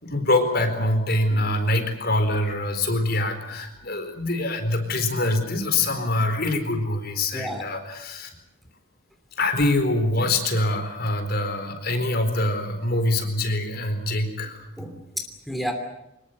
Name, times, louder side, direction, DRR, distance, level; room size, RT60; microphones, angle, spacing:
voice 1, 0.0-8.3 9.4-14.7, left 2 dB, 50° left, 7 dB, 4.3 m, -24 dB
voice 2, 7.3-7.6 14.8-15.7, equal, ahead, 5 dB, 2.9 m, -32 dB
24.5 x 21.0 x 8.0 m, 0.88 s
head